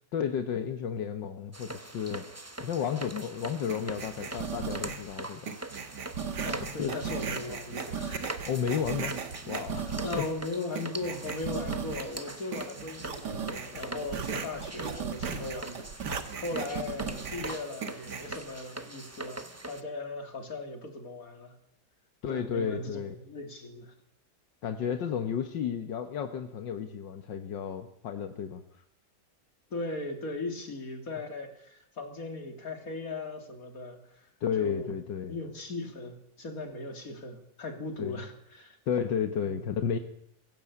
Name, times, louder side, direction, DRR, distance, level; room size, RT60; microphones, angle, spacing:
voice 1, 0.1-2.2 2.6-5.5 6.8-7.0 8.5-9.2 9.5-10.2 22.2-23.2 24.6-28.6 34.4-35.4 38.0-38.2 38.9-40.0, left 7 dB, 80° left, 8 dB, 1.9 m, -32 dB
sound 1, 1.5-19.8, right 2 dB, 10° right, 0.8 m, -42 dB
sound 2, 3.7-5.1 5.5-10.4 10.8-12.2 12.5-18.4, right 6 dB, 65° right, 2.1 m, -37 dB
voice 2, 6.4-8.4 10.0-21.5 22.3-23.9 29.7-34.3 34.6-35.0 35.3-38.8, left 2 dB, 50° left, 5 dB, 3.3 m, -38 dB
23.5 x 16.0 x 8.5 m, 0.75 s
omnidirectional pair, 1.9 m